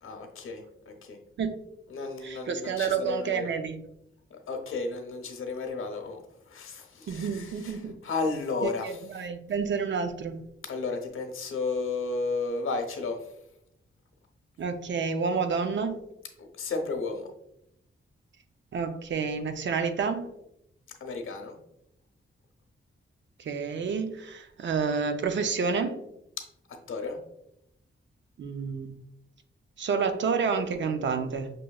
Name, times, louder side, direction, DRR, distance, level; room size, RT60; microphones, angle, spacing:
voice 1, 0.0-1.2 1.9-3.5 4.3-6.2 6.5-9.0 10.6-13.3 16.4-17.3 21.0-21.6 26.4-26.5 26.9-27.2, left 3 dB, 85° left, 4 dB, 0.8 m, -33 dB
voice 2, 2.2-3.8 7.1-8.0 8.6-10.4 14.6-16.0 18.7-20.3 23.4-26.0 28.4-28.9 29.8-31.5, right 5 dB, 60° right, 8 dB, 0.5 m, -29 dB
6.1 x 3.0 x 2.3 m, 0.79 s
wide cardioid pair, 145°, 21 cm